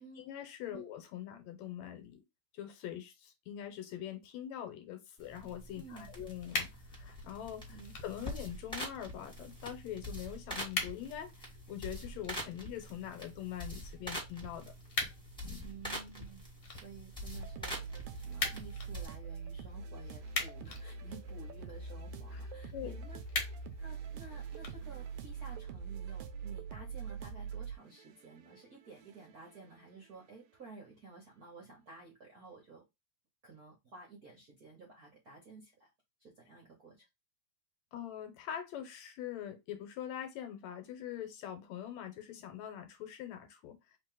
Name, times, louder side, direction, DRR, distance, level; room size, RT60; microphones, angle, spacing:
voice 1, 0.0-2.2 2.5-11.3 11.7-14.7 15.4-15.6 22.3-22.4 22.7-22.9 37.9-43.8, left 10 dB, 75° left, 2.0 m, -43 dB
sound 1, 5.2-19.1, equal, ahead, 1.3 m, -45 dB
voice 2, 5.7-6.1 7.7-7.9 15.6-17.8 18.1-23.2 23.8-32.8 33.4-35.9 36.2-37.1, right 4 dB, 60° right, 0.9 m, -53 dB
sound 2, 6.4-25.4, left 4 dB, 60° left, 1.7 m, -44 dB
sound 3, 17.3-30.1, right 5 dB, 85° right, 1.3 m, -44 dB
4.0 x 3.2 x 3.8 m
omnidirectional pair, 3.4 m